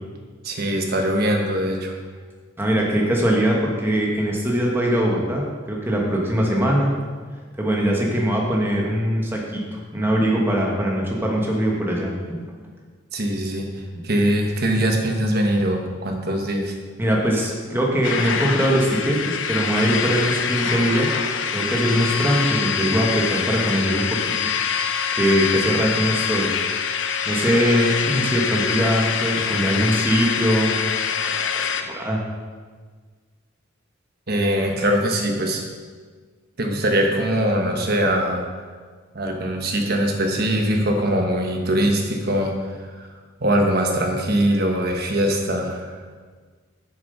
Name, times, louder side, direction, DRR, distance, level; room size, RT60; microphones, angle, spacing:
voice 1, 0.4-2.0 13.1-13.7 14.0-16.7 34.3-35.6 36.6-38.5 39.1-43.1 43.4-46.0, right 1 dB, 50° right, 2 dB, 1.2 m, -22 dB
voice 2, 2.6-6.9 7.6-9.6 9.9-12.4 13.9-14.1 17.0-21.1 21.5-24.4 24.8-26.5 27.2-30.8 31.5-31.6 31.9-32.2, equal, 10° right, -2 dB, 1.2 m, -21 dB
sound 1, 18.0-31.8, left 7 dB, 70° left, 0.6 m, -25 dB
7.3 x 7.2 x 5.4 m, 1.5 s
head